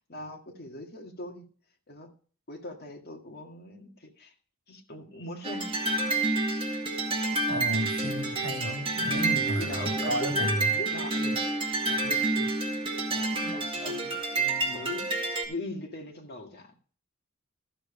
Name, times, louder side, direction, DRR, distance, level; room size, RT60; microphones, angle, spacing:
voice 1, 0.1-1.5 1.9-2.1 2.5-4.3 4.7-5.7 9.1-11.4 11.9-12.5 13.1-15.1 15.5-16.8, left 1 dB, 50° left, 3 dB, 1.9 m, -41 dB
sound 1, 5.4-15.4, right 2 dB, 25° right, 1.8 m, -29 dB
voice 2, 7.5-10.7 13.4-13.6, right 1 dB, 70° right, 4 dB, 2.3 m, -33 dB
13.5 x 7.0 x 5.0 m, 0.41 s
head